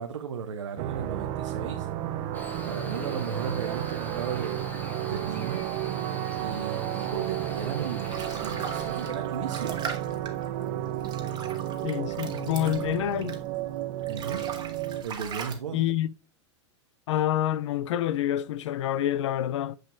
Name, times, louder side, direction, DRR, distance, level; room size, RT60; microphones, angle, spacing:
voice 1, 0.0-1.9 2.7-5.6 6.4-9.8 14.1-14.5 15.0-15.8, right 6 dB, 90° right, 0.6 m, -35 dB
sound 1, 0.8-15.0, right 12 dB, 45° right, 0.6 m, -32 dB
Cricket, 2.3-9.1, left 2 dB, 10° left, 1.2 m, -43 dB
sound 2, 7.6-13.6 14.0-15.5, right 6 dB, 30° right, 1.3 m, -40 dB
voice 2, 11.8-13.4 15.7-16.1 17.1-19.8, left 12 dB, 75° left, 0.4 m, -27 dB
6.5 x 6.1 x 2.5 m
hypercardioid pair, 110°, 16 cm